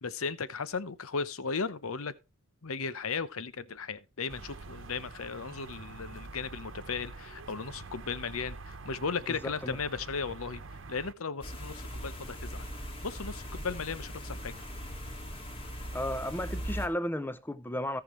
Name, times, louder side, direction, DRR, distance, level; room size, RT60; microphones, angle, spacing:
voice 1, 0.0-2.1 2.6-10.6 10.9-12.7 13.0-14.5, left 5 dB, 80° left, 0.8 m, -36 dB
sound 1, 4.3-11.1, right 3 dB, 60° right, 1.0 m, -46 dB
voice 2, 9.3-9.8 15.9-18.0, left 1 dB, 10° left, 0.6 m, -34 dB
sound 2, 11.4-16.9, equal, 25° left, 2.1 m, -39 dB
17.0 x 5.9 x 3.2 m
head